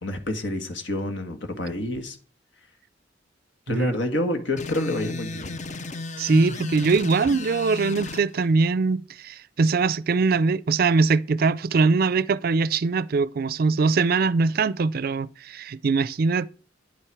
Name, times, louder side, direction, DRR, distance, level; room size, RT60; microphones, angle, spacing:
voice 1, 0.0-2.2 3.7-5.6, left 1 dB, 75° left, 1.6 m, -28 dB
sound 1, 4.6-8.2, left 3 dB, 40° left, 0.7 m, -34 dB
voice 2, 6.2-16.5, right 4 dB, 55° right, 0.4 m, -22 dB
10.0 x 8.9 x 4.7 m
head